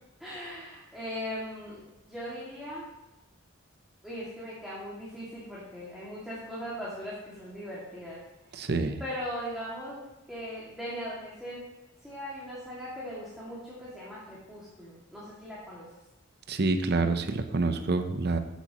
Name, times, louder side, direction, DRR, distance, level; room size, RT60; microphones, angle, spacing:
voice 1, 0.2-2.9 4.0-8.2 9.0-10.0 10.3-11.6 12.0-15.8, equal, ahead, -8 dB, 2.3 m, -39 dB
voice 2, 8.5-9.0 16.5-18.4, right 3 dB, 55° right, 8 dB, 0.7 m, -27 dB
14.5 x 8.2 x 3.0 m, 0.99 s
head